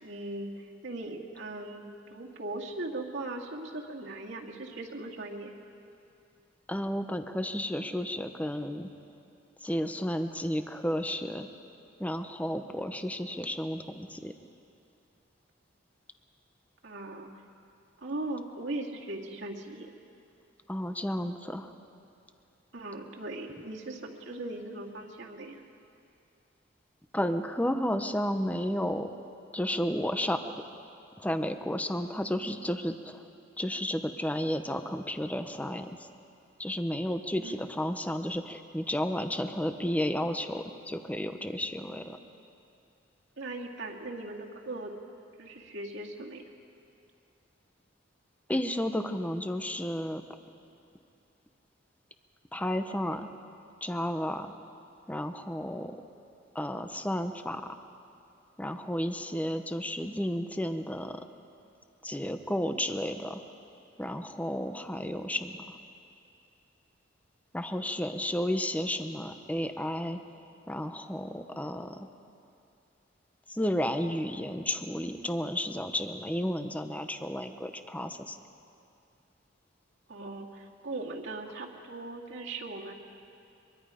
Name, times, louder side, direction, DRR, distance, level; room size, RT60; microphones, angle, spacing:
voice 1, 0.0-5.5 16.8-17.3 18.0-19.9 22.7-25.6 37.4-37.6 43.4-44.9 45.4-46.5 80.1-82.9, right 2 dB, 70° right, -1 dB, 2.2 m, -39 dB
voice 2, 6.7-8.9 9.6-11.5 12.0-14.3 20.7-21.7 27.1-29.1 29.5-30.4 31.2-33.2 33.6-36.1 36.6-42.2 48.5-50.2 52.5-53.3 53.8-54.5 55.1-56.0 56.5-57.8 58.6-61.3 62.0-63.4 64.0-65.8 67.5-70.2 70.7-72.1 73.5-78.4, equal, 10° left, 8 dB, 0.8 m, -32 dB
23.5 x 23.0 x 5.0 m, 2.5 s
head